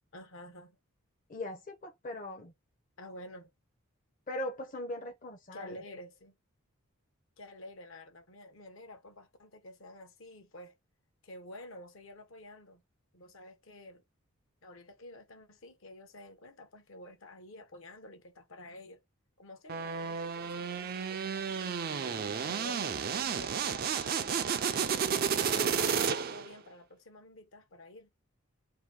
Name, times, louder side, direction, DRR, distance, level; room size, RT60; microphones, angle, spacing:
voice 1, 0.1-0.8 3.0-3.5 5.5-6.3 7.4-10.7 11.2-12.8 13.1-14.0 14.6-19.0 19.4-21.8 22.4-25.0 25.6-28.1, left 1 dB, 65° left, 0.9 m, -50 dB
voice 2, 1.3-2.5 4.3-5.8, left 1 dB, 40° left, 0.6 m, -39 dB
sound 1, 19.7-26.5, right 7 dB, 45° right, 0.4 m, -32 dB
2.8 x 2.6 x 3.7 m
head